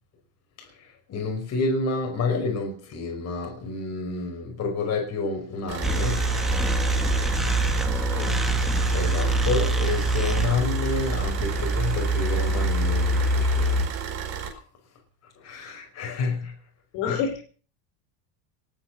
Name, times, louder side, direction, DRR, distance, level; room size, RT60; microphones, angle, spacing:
voice 1, 1.1-6.2 8.9-13.9 14.5-14.6 15.4-16.5 17.1-17.2, left 3 dB, 30° left, 5.3 m, -29 dB
Car / Idling, 5.7-14.5, right 7 dB, 30° right, 4.7 m, -33 dB
sound 1, 5.8-13.9, right 1 dB, ahead, 1.6 m, -24 dB
voice 2, 8.1-8.4 16.9-17.4, left 6 dB, 55° left, 5.6 m, -29 dB
19.5 x 10.5 x 6.4 m
cardioid pair, 170°, 49 cm